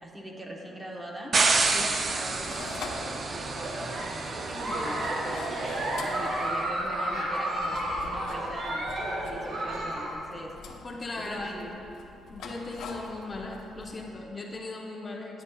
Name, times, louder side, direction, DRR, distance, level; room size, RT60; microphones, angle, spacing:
voice 1, 0.0-1.4 1.7-5.5 6.0-10.5 11.2-11.8, equal, 15° right, -1 dB, 1.0 m, -41 dB
sound 1, 1.3-6.5, right 3 dB, 40° right, 0.5 m, -29 dB
sound 2, 1.4-14.1, left 3 dB, 80° left, 0.7 m, -45 dB
Giggle, 3.4-10.1, right 1 dB, 65° right, 1.2 m, -32 dB
voice 2, 10.8-11.5 12.3-15.4, left 2 dB, 30° left, 0 dB, 0.6 m, -38 dB
10.5 x 6.9 x 2.3 m, 3.0 s
cardioid pair, 90°, 0 cm